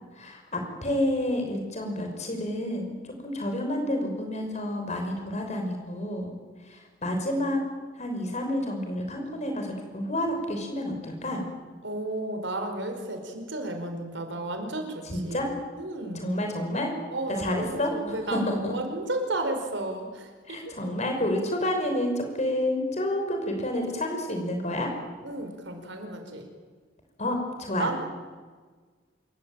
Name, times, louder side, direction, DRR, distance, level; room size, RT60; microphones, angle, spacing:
voice 1, 0.2-6.4 6.7-7.6 8.0-11.4 15.1-15.5 16.1-16.9 17.4-17.9 18.3-18.7 20.5-24.9 27.2-27.9, left 1 dB, 35° left, 3 dB, 5.9 m, -29 dB
voice 2, 11.8-15.5 15.8-16.3 17.1-20.8 25.2-26.5 27.8-28.0, right 2 dB, 70° right, 5 dB, 5.0 m, -33 dB
27.0 x 23.0 x 8.9 m, 1.4 s
head